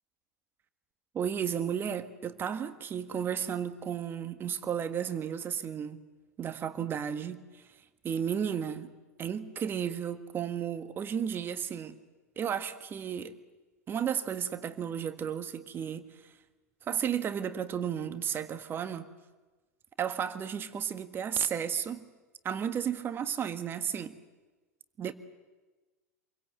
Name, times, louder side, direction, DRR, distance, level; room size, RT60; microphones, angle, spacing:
voice 1, 1.1-6.0 6.4-7.7 8.0-8.9 9.2-12.0 12.3-13.3 13.9-16.3 16.9-19.1 20.0-22.0 22.4-24.2 25.0-25.1, right 8 dB, 25° right, 1.6 m, -33 dB
28.0 x 22.5 x 8.0 m
figure-of-eight pair, 85°, 8 cm